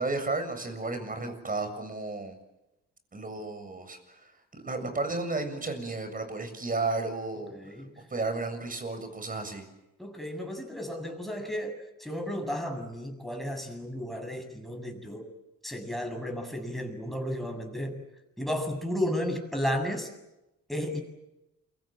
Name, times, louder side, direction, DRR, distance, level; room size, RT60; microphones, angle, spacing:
voice 1, 0.0-2.4 3.1-7.5 8.1-9.6, right 3 dB, 30° right, 8 dB, 7.3 m, -33 dB
voice 2, 7.5-7.9 10.0-15.2 15.6-18.0 18.4-20.1 20.7-21.0, equal, ahead, 4 dB, 7.5 m, -33 dB
29.5 x 24.0 x 7.7 m, 0.94 s
cardioid pair, 90°, 30 cm